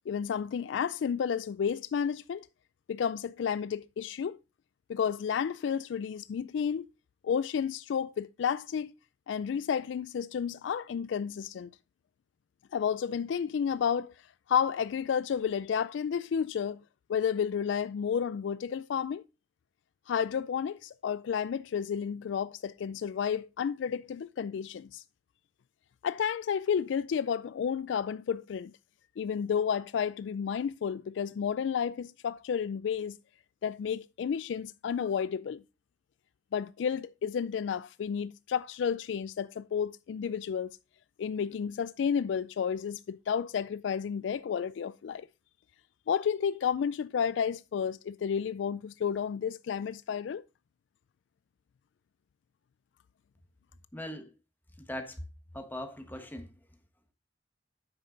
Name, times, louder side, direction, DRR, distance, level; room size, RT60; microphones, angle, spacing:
voice 1, 0.1-2.5 2.9-4.4 4.9-6.9 7.2-8.9 9.3-11.7 12.7-14.1 14.5-16.8 17.1-19.2 20.1-25.0 26.0-28.7 29.2-33.2 33.6-35.6 36.5-40.8 41.2-45.3 46.1-50.4, left 7 dB, 70° left, 0.3 m, -31 dB
voice 2, 53.9-54.3 54.8-55.2 55.5-56.5, left 1 dB, 10° left, 1.3 m, -40 dB
8.8 x 6.5 x 3.8 m
head